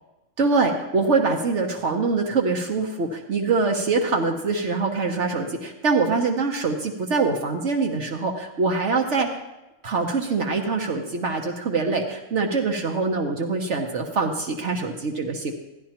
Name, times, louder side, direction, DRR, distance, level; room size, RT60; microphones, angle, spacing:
voice 1, 0.4-9.3 9.8-15.5, right 4 dB, 65° right, 3 dB, 1.2 m, -24 dB
14.5 x 11.5 x 2.9 m, 1.0 s
omnidirectional pair, 1.3 m